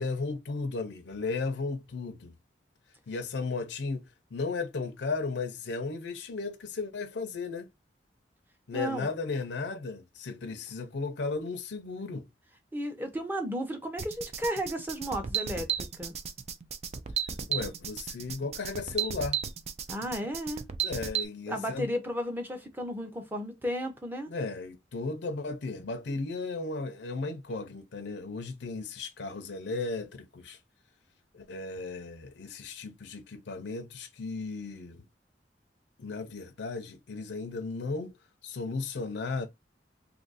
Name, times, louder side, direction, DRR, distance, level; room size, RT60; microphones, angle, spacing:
voice 1, 0.0-2.3 3.1-7.7 8.7-12.3 17.5-19.4 20.8-21.9 24.3-30.6 31.3-35.0 36.0-38.1 38.4-39.5, left 3 dB, 70° left, 0.5 m, -35 dB
voice 2, 8.7-9.1 12.7-15.7 16.0-16.1 19.9-20.6 21.5-24.3, equal, 10° right, 0.8 m, -33 dB
sound 1, 14.0-21.3, right 9 dB, 35° right, 0.4 m, -34 dB
2.7 x 2.5 x 3.9 m
head